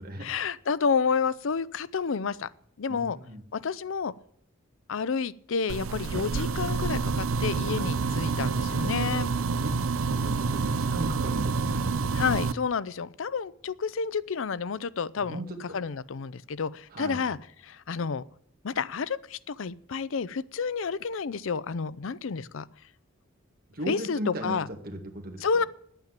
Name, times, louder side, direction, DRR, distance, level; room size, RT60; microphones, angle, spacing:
voice 1, 0.2-2.5 2.8-3.2 3.5-4.1 4.9-9.3 12.1-15.4 15.7-17.4 17.6-18.2 18.6-22.7 23.9-24.7 25.4-25.6, left 5 dB, 70° left, 18 dB, 0.5 m, -30 dB
voice 2, 2.9-3.4 9.3-9.7 10.1-12.0 15.2-15.8 16.9-17.2 23.7-25.5, right 1 dB, 50° right, 3 dB, 2.2 m, -37 dB
sound 1, 5.7-12.5, right 4 dB, 90° right, 0.6 m, -28 dB
10.5 x 9.0 x 7.4 m, 0.66 s
head